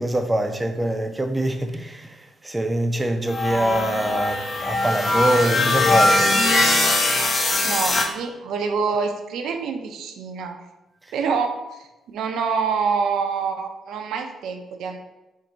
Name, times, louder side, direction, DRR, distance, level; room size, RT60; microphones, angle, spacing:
voice 1, 0.0-2.1 2.4-6.3, right 1 dB, 15° right, 0.4 m, -24 dB
sound 1, 3.3-8.1, left 2 dB, 35° left, 0.8 m, -20 dB
voice 2, 7.4-10.6 11.1-15.0, right 5 dB, 75° right, 0.5 m, -26 dB
4.4 x 2.6 x 3.9 m
cardioid pair, 90°, 0 cm